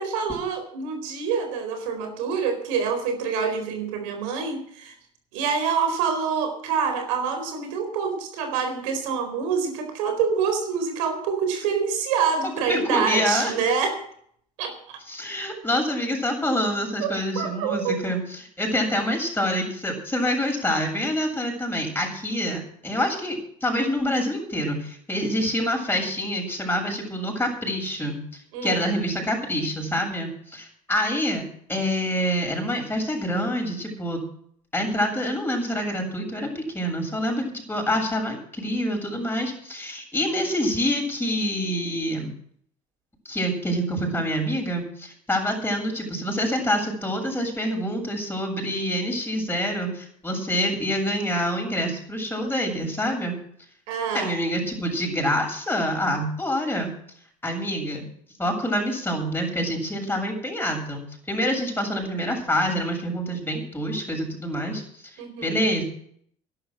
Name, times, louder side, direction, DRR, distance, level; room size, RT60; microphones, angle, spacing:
voice 1, 0.0-4.9 5.3-14.0 14.6-14.7 17.0-18.0 28.5-28.9 53.9-54.3 65.2-65.6, right 6 dB, 85° right, 6 dB, 4.3 m, -26 dB
voice 2, 12.7-13.5 15.1-28.2 28.6-31.4 31.7-34.2 34.7-42.3 43.2-53.3 54.1-56.9 57.4-58.0 58.4-61.0 61.3-65.0 65.4-65.8, equal, 15° left, 1 dB, 7.7 m, -26 dB
12.0 x 11.5 x 7.6 m, 0.64 s
supercardioid pair, 75°, 16 cm